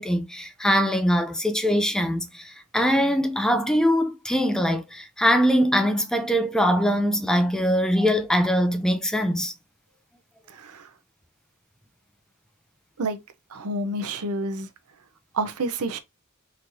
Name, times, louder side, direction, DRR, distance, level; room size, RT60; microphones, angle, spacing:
voice 1, 0.0-9.5, equal, 5° left, 0.4 m, -22 dB
voice 2, 10.5-10.9 13.0-13.2 13.5-14.7 15.3-16.0, right 2 dB, 80° right, 0.7 m, -29 dB
4.0 x 3.1 x 2.6 m
head